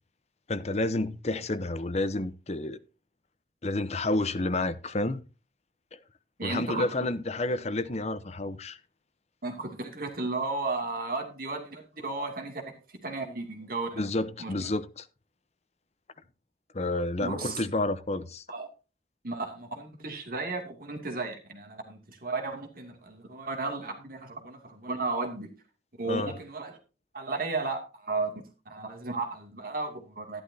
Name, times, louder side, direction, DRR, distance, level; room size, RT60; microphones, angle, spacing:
voice 1, 0.5-2.8 3.6-5.2 6.4-8.8 14.0-15.0 16.7-18.4 26.1-26.3, left 2 dB, 40° left, 0.8 m, -30 dB
voice 2, 6.4-7.1 9.4-14.0 14.4-14.7 17.2-17.6 18.5-18.7 19.2-25.5 26.0-26.8 27.1-30.4, right 3 dB, 55° right, 2.5 m, -34 dB
12.0 x 11.5 x 2.8 m
head